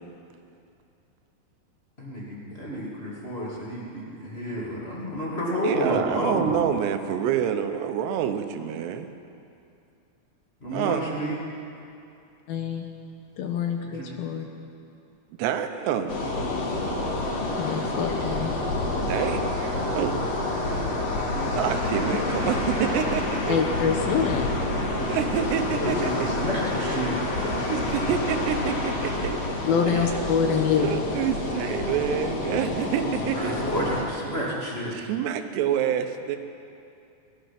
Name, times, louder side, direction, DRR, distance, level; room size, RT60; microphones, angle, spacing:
voice 1, 2.0-6.7 10.6-11.4 13.8-14.1 18.2-18.3 25.8-27.1 27.4-27.5 33.1-34.9, equal, 20° left, -6 dB, 1.7 m, -30 dB
voice 2, 5.6-9.1 10.7-11.1 15.4-16.2 19.0-20.1 21.6-23.6 25.1-26.3 26.8-27.0 27.3-29.4 29.9-30.1 30.8-33.6 34.9-36.4, right 9 dB, 85° right, 8 dB, 2.9 m, -27 dB
voice 3, 12.5-12.8 13.4-14.5 17.6-18.5 23.5-24.5 29.7-30.9, left 7 dB, 70° left, 3 dB, 2.7 m, -25 dB
sound 1, 16.1-34.0, left 2 dB, 45° left, 2.7 m, -28 dB
18.5 x 13.0 x 5.9 m, 2.6 s
omnidirectional pair, 4.8 m